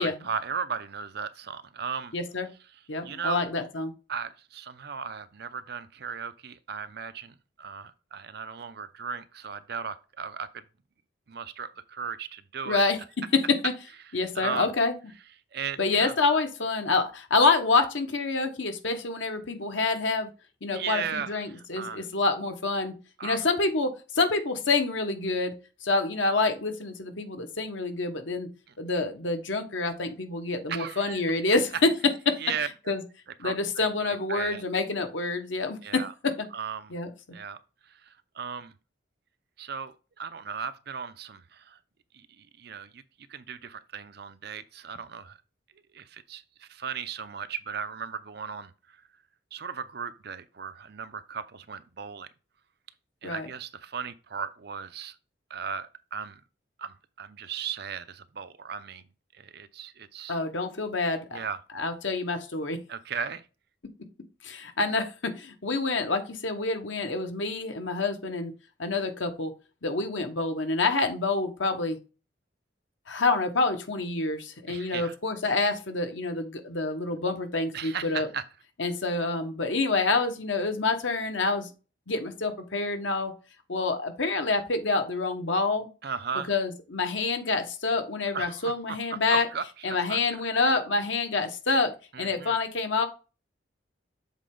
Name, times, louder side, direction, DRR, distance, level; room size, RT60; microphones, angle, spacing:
voice 1, 0.0-2.1 3.0-3.4 4.1-10.6 11.3-12.8 14.3-14.7 15.5-16.2 20.7-22.1 23.2-23.4 30.7-31.2 32.4-32.9 33.4-34.6 35.8-36.1 36.5-36.9 37.3-37.6 37.8-38.7 39.6-41.8 42.1-43.0 43.3-45.4 45.9-49.0 49.5-52.3 53.2-55.2 55.5-56.4 56.8-59.0 59.3-60.4 61.3-61.6 62.9-63.5 74.7-75.2 77.7-78.4 86.0-86.5 88.3-90.2 92.1-92.5, right 6 dB, 60° right, 0.6 m, -36 dB
voice 2, 2.1-2.5 2.9-3.9 12.7-13.0 13.6-13.7 14.1-14.9 15.8-20.3 20.6-22.9 23.2-25.5 25.8-28.5 28.8-31.9 32.3-32.4 32.9-33.0 33.4-36.0 36.9-37.1 53.2-53.5 60.3-61.4 61.7-62.8 64.4-68.5 68.8-69.5 69.8-72.0 73.1-78.3 78.8-81.7 82.1-83.3 83.7-85.9 86.5-89.5 89.8-93.1, left 3 dB, 85° left, 1.2 m, -27 dB
7.2 x 4.2 x 3.8 m
head